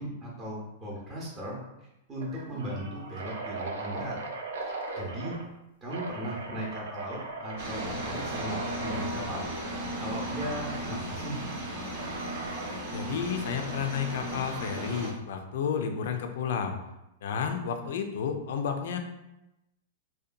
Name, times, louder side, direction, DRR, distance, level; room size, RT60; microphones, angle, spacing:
voice 1, 0.0-1.6 2.1-4.1 4.6-5.4 5.8-9.5 10.0-11.4, right 1 dB, 20° right, -5 dB, 0.7 m, -37 dB
sound 1, 0.9-1.2 1.5-1.6 2.2-5.4 5.9-9.1 10.4-10.8 12.0-12.9, right 3 dB, 85° right, 0.4 m, -39 dB
sound 2, 7.6-15.1, right 1 dB, 55° right, 0.7 m, -36 dB
voice 2, 12.9-16.7 17.2-19.0, left 7 dB, 70° left, 5 dB, 0.3 m, -31 dB
2.7 x 2.2 x 2.5 m, 0.92 s
hypercardioid pair, 135°, 0 cm